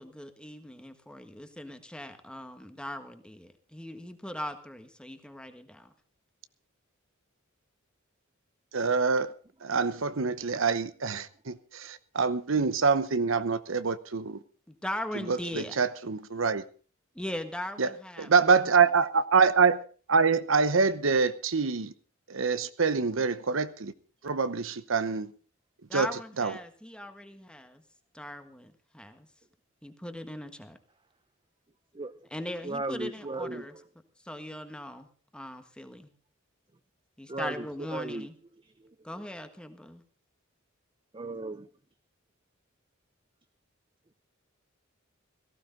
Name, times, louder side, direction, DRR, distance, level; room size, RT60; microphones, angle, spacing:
voice 1, 0.0-5.9 14.7-15.8 17.1-18.3 25.9-27.8 28.1-29.3 29.8-30.8 32.3-33.7 34.2-36.1 37.2-38.3 39.0-40.0, left 1 dB, 5° left, 1.5 m, -39 dB
voice 2, 8.7-9.3 9.6-14.4 15.1-16.6 17.8-17.9 18.2-19.8 20.1-21.9 22.3-23.9 24.2-25.3 25.9-26.1 26.4-26.6, right 5 dB, 70° right, 0.9 m, -25 dB
voice 3, 32.6-33.8 37.3-38.3 38.8-38.9 41.1-41.7, right 2 dB, 25° right, 0.7 m, -36 dB
17.5 x 15.0 x 3.9 m
head